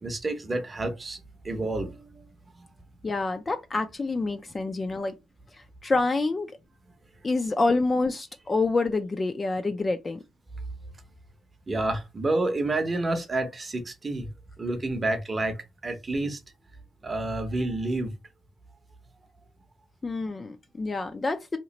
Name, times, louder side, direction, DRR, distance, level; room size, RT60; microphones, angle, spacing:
voice 1, 0.0-2.3 2.6-2.7 11.7-14.3 14.6-15.6 15.8-16.4 17.0-18.1, right 2 dB, 20° right, 0.6 m, -29 dB
voice 2, 3.0-5.1 5.5-6.5 7.2-10.2 20.0-21.6, left 3 dB, 20° left, 0.3 m, -27 dB
2.9 x 2.4 x 3.9 m
cardioid pair, 145°, 0 cm